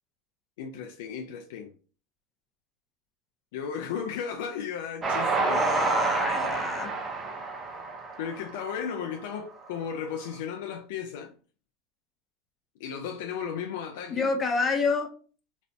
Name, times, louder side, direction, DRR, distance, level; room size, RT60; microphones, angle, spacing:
voice 1, 0.6-1.7 3.5-5.8 8.2-11.3 12.8-14.3, left 7 dB, 75° left, 0.4 m, -35 dB
Train, 5.0-9.4, right 3 dB, 30° right, 0.7 m, -29 dB
voice 2, 5.5-6.9 14.1-15.1, left 4 dB, 25° left, 0.8 m, -28 dB
4.1 x 2.5 x 2.2 m
hypercardioid pair, 100°, 0 cm